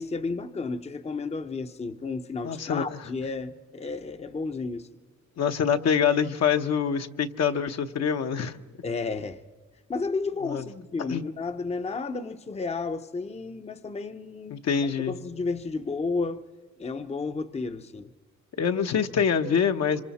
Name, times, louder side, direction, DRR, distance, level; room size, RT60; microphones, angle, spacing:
voice 1, 0.0-4.9 8.8-9.4 9.9-14.6 15.1-16.4 16.8-18.1, left 4 dB, 20° left, 0.7 m, -32 dB
voice 2, 2.4-3.0 5.4-8.6 10.4-10.6 11.1-11.2 14.5-15.1 18.6-20.0, left 7 dB, 60° left, 1.0 m, -25 dB
26.0 x 25.5 x 4.2 m
cardioid pair, 90°, 30 cm